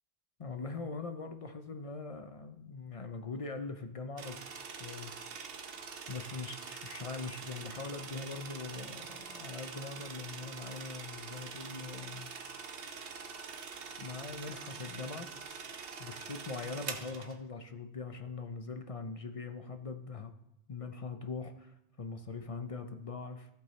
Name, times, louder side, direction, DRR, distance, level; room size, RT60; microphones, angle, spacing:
voice 1, 0.4-4.4 4.8-5.1 6.1-12.3 14.0-15.3 16.0-20.3 20.7-23.5, left 4 dB, 40° left, 7 dB, 0.6 m, -42 dB
sound 1, 4.2-17.4, right 5 dB, 70° right, 1.0 m, -45 dB
14.5 x 8.1 x 3.2 m, 0.85 s
omnidirectional pair, 1.0 m